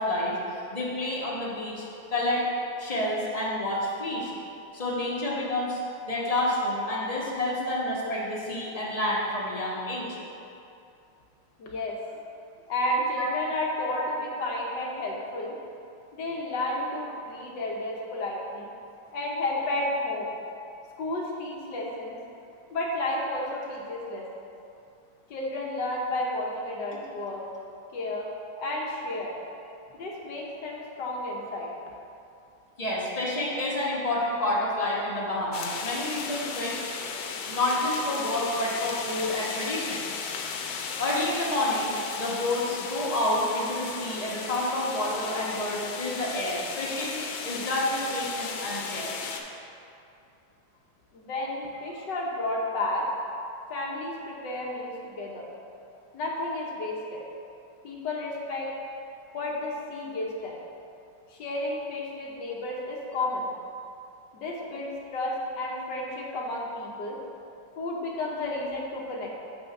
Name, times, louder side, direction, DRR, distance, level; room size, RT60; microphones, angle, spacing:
voice 1, 0.0-2.4 2.8-4.3 4.7-5.8 6.1-10.2 13.2-13.3 13.9-14.0 26.9-27.0 32.8-36.8 37.5-40.0 41.0-41.9 42.2-47.2 47.4-49.1, left 1 dB, 25° left, -6 dB, 0.9 m, -29 dB
voice 2, 11.6-12.0 12.7-15.5 16.1-18.7 19.1-20.3 21.0-22.2 22.7-24.2 25.3-27.4 27.9-28.3 28.6-29.3 29.9-31.7 51.1-53.1 53.7-55.5 56.1-57.2 57.8-58.7 59.3-60.6 61.3-63.5 64.3-67.2 67.8-69.3, left 1 dB, 65° left, -3 dB, 1.5 m, -32 dB
sound 1, 35.5-49.4, left 5 dB, 85° left, 1.4 m, -35 dB
7.9 x 3.4 x 5.8 m, 2.6 s
omnidirectional pair, 2.2 m